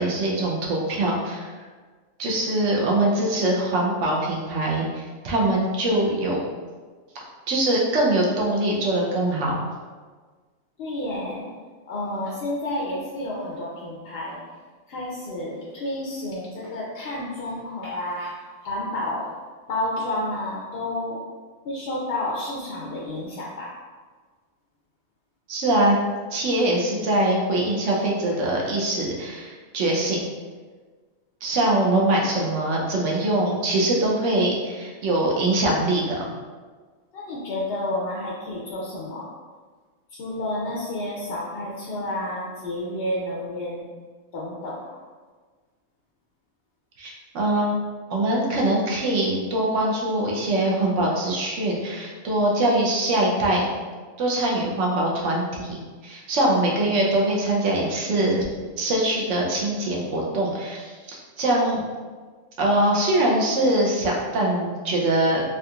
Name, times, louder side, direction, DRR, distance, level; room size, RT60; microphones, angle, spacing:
voice 1, 0.0-1.5 2.2-6.4 7.5-9.6 25.5-26.0 26.3-30.2 31.4-36.3 47.0-47.8 48.1-53.7 54.2-55.8 56.0-58.5 58.8-61.8 62.6-65.4, right 1 dB, 65° right, -3 dB, 0.9 m, -23 dB
voice 2, 10.8-11.5 11.9-14.4 14.9-19.3 19.7-21.2 21.6-23.7 37.1-39.3 40.1-43.9 44.3-44.8, left 1 dB, 65° left, -4 dB, 0.6 m, -30 dB
3.7 x 2.7 x 2.3 m, 1.4 s
omnidirectional pair, 1.4 m